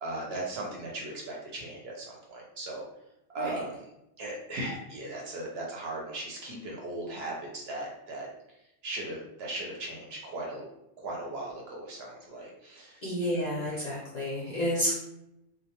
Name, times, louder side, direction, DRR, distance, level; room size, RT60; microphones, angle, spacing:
voice 1, 0.0-2.8 3.3-3.7 4.2-8.3 8.8-10.6 11.0-13.0, right 2 dB, 65° right, -2 dB, 0.8 m, -37 dB
voice 2, 13.0-14.9, equal, 50° left, -6 dB, 0.5 m, -30 dB
2.2 x 2.0 x 2.7 m, 0.85 s
omnidirectional pair, 1.2 m